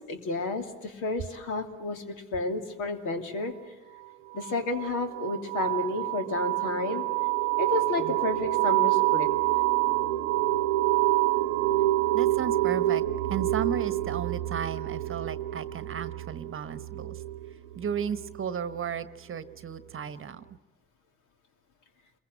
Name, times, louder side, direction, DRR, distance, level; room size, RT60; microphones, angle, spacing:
voice 1, 0.1-3.5 4.3-7.1 7.6-9.3, left 2 dB, 65° left, 4 dB, 2.9 m, -31 dB
sound 1, 4.3-18.8, right 16 dB, 80° right, 0.8 m, -27 dB
voice 2, 12.1-17.2 17.8-20.4, right 8 dB, 40° right, 13 dB, 1.2 m, -34 dB
28.5 x 22.0 x 7.8 m, 1.1 s
hypercardioid pair, 55°, 34 cm